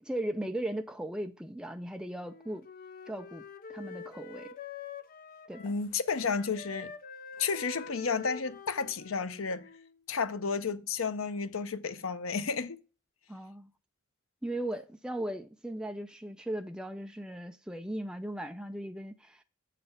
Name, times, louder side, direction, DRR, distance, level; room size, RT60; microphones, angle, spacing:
voice 1, 0.0-2.7 3.1-4.5 5.5-5.7 13.3-13.7 14.4-19.4, right 1 dB, 5° right, 0.4 m, -37 dB
Wind instrument woodwind instrument, 2.2-5.8 6.1-10.0, left 5 dB, 45° left, 0.6 m, -46 dB
voice 2, 5.6-6.9 7.4-9.7 10.1-12.8, left 5 dB, 80° left, 0.7 m, -32 dB
7.9 x 4.2 x 5.1 m
head